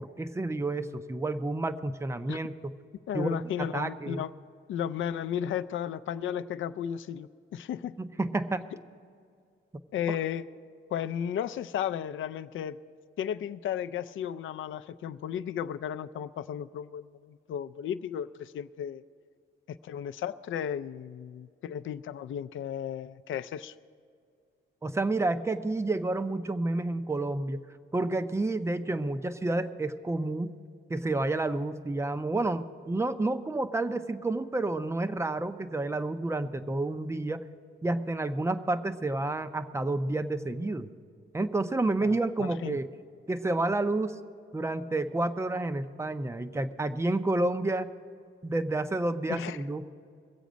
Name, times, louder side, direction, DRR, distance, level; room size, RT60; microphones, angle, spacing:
voice 1, 0.0-2.7 3.1-4.2 8.0-8.7 10.1-10.2 24.8-27.6 27.9-30.6 30.9-37.5 37.8-40.9 41.3-42.9 43.3-44.2 44.5-47.9 48.4-49.8, right 2 dB, 15° right, 11 dB, 0.5 m, -30 dB
voice 2, 3.1-4.3 4.7-8.0 9.9-10.5 10.9-12.8 13.2-19.0 19.7-23.8 42.0-42.8 49.3-49.6, left 9 dB, 70° left, 12 dB, 0.4 m, -34 dB
22.0 x 8.3 x 5.1 m, 2.3 s
wide cardioid pair, 160°, 21 cm